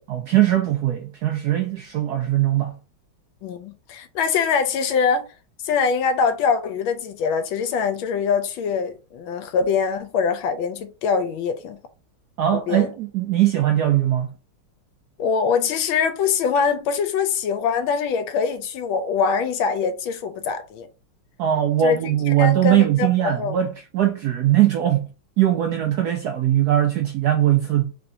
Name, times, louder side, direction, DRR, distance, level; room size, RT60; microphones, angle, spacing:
voice 1, 0.1-2.8 12.4-14.3 21.4-27.9, right 12 dB, 85° right, 0.8 m, -20 dB
voice 2, 3.4-5.2 5.6-11.8 12.5-12.9 15.2-20.9 21.8-23.6, left 6 dB, 80° left, 1.4 m, -23 dB
3.5 x 3.5 x 2.7 m
omnidirectional pair, 2.3 m